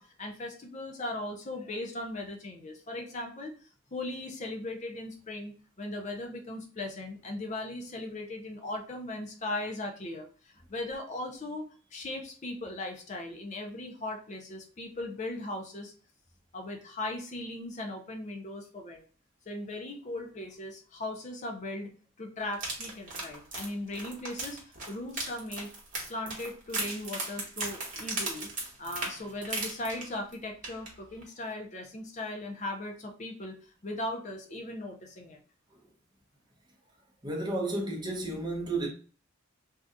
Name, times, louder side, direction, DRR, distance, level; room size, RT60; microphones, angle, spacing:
voice 1, 0.0-3.6 3.9-11.6 11.9-15.9 16.5-19.0 19.5-21.9 22.2-25.7 26.0-28.5 28.8-35.4, left 1 dB, 35° left, 0.5 m, -38 dB
sound 1, 22.5-30.3 30.6-30.9 31.2-31.3, right 2 dB, 40° right, 1.1 m, -37 dB
voice 2, 37.2-38.9, right 2 dB, 20° right, 0.8 m, -32 dB
2.7 x 2.4 x 3.5 m
head